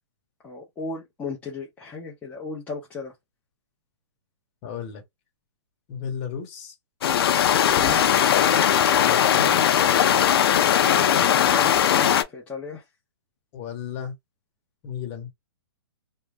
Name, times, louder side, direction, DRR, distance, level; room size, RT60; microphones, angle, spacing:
voice 1, 0.4-3.1 7.7-8.0 10.8-12.8, left 4 dB, 10° left, 0.5 m, -35 dB
voice 2, 4.6-5.0 5.9-6.8 9.0-9.6 13.5-14.1 14.8-15.3, left 7 dB, 30° left, 1.0 m, -34 dB
sound 1, 7.0-12.2, left 9 dB, 60° left, 0.5 m, -19 dB
2.2 x 2.0 x 3.3 m
hypercardioid pair, 150°, 14 cm